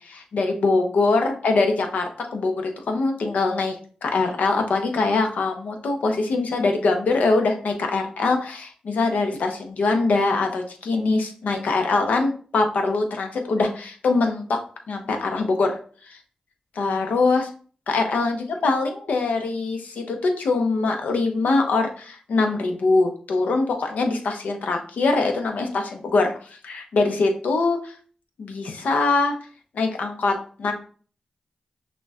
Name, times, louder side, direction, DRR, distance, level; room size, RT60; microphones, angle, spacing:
voice 1, 0.0-3.8 4.0-14.6 14.9-15.8 16.1-16.2 16.8-17.5 17.9-27.9 28.4-29.4 29.7-30.7, left 3 dB, 85° left, 4 dB, 0.6 m, -23 dB
6.0 x 2.2 x 2.3 m, 0.43 s
cardioid pair, 45°, 3 cm